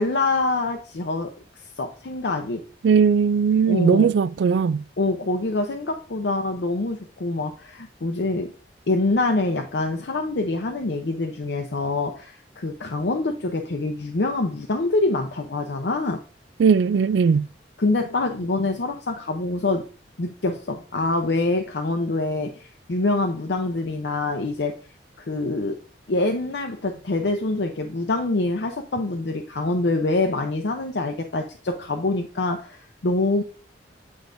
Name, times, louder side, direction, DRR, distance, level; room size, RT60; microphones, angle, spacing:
voice 1, 0.0-2.6 3.7-4.1 5.0-8.5 8.9-16.2 17.8-19.9 20.2-24.8 25.2-25.8 26.1-33.4, left 2 dB, 70° left, 0.6 m, -25 dB
voice 2, 2.8-4.8 16.6-17.5, right 6 dB, 70° right, 0.3 m, -18 dB
8.6 x 4.7 x 2.6 m
head